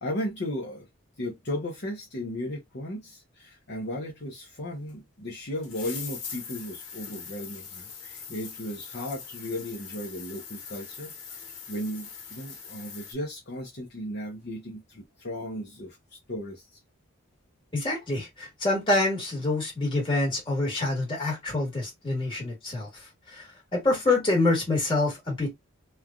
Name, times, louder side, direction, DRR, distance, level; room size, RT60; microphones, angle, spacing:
voice 1, 0.0-0.9 1.2-16.8, left 1 dB, 50° left, 0.7 m, -36 dB
sound 1, 4.9-5.0 5.6-13.1, left 6 dB, 85° left, 1.0 m, -42 dB
voice 2, 17.7-22.9 23.3-23.5 23.7-25.6, left 2 dB, 25° left, 1.5 m, -26 dB
3.2 x 2.3 x 2.4 m
head